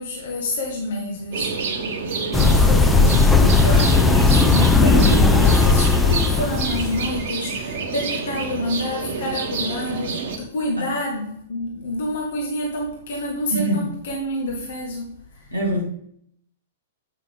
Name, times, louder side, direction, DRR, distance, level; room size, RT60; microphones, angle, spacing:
voice 1, 0.0-1.6 2.2-15.5, left 1 dB, 55° left, 1.3 m, -28 dB
sound 1, 1.3-10.4, right 4 dB, 50° right, 1.1 m, -28 dB
sound 2, 2.3-7.3, left 4 dB, 10° left, 0.5 m, -16 dB
voice 2, 13.5-13.9 15.5-15.8, right 1 dB, 85° left, 2.3 m, -24 dB
8.1 x 5.7 x 3.3 m
figure-of-eight pair, 105°, 0 cm